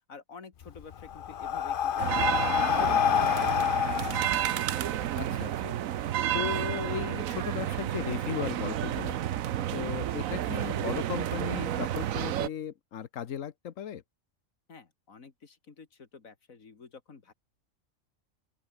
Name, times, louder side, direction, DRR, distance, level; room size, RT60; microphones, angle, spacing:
voice 1, 0.1-3.9 14.7-17.3, left 5 dB, 90° left, 2.6 m, -49 dB
Breathing, 0.6-5.3, left 9 dB, 50° left, 0.7 m, -28 dB
sound 1, 2.0-12.5, right 11 dB, 80° right, 1.2 m, -31 dB
voice 2, 5.1-5.8 6.3-9.2 9.7-14.0, left 9 dB, 70° left, 1.4 m, -36 dB
open air
omnidirectional pair, 1.4 m